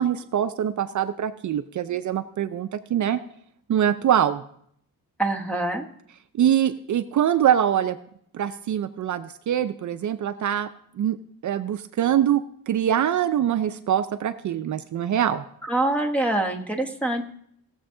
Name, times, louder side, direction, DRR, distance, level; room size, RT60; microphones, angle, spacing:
voice 1, 0.0-3.2 3.7-4.4 6.4-8.0 8.3-10.7 11.0-11.2 11.4-15.4, right 10 dB, 55° right, 10 dB, 0.5 m, -23 dB
voice 2, 5.2-5.8 15.7-17.2, right 2 dB, 5° left, 4 dB, 1.1 m, -24 dB
18.0 x 7.1 x 3.8 m, 0.67 s
wide cardioid pair, 155°, 35 cm